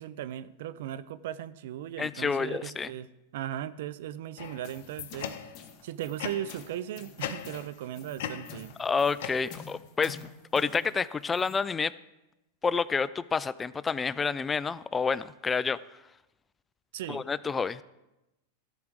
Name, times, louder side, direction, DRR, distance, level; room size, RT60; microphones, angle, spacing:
voice 1, 0.0-3.1 3.3-5.5 5.8-8.7 16.9-17.2, right 11 dB, 70° right, 16 dB, 0.5 m, -37 dB
voice 2, 2.0-2.9 8.8-10.2 10.5-11.9 12.6-15.8 17.1-17.8, left 5 dB, 15° left, 17 dB, 0.3 m, -29 dB
sound 1, 4.4-5.7 6.2-6.7 7.2-7.9 8.2-9.9, left 9 dB, 70° left, 0.7 m, -39 dB
sound 2, 4.4-11.6, left 6 dB, 45° left, 1.9 m, -49 dB
13.0 x 5.1 x 6.2 m, 0.95 s
hypercardioid pair, 125°, 0 cm